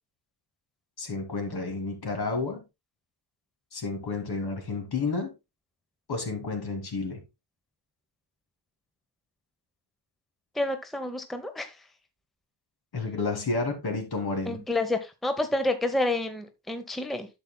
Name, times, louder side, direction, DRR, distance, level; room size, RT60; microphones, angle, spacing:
voice 1, 1.0-2.6 3.7-5.3 6.1-7.2 12.9-14.6, left 3 dB, 60° left, 2.4 m, -31 dB
voice 2, 10.5-11.8 14.5-17.3, left 2 dB, ahead, 0.8 m, -29 dB
10.5 x 7.3 x 2.2 m
cardioid pair, 100°, 43 cm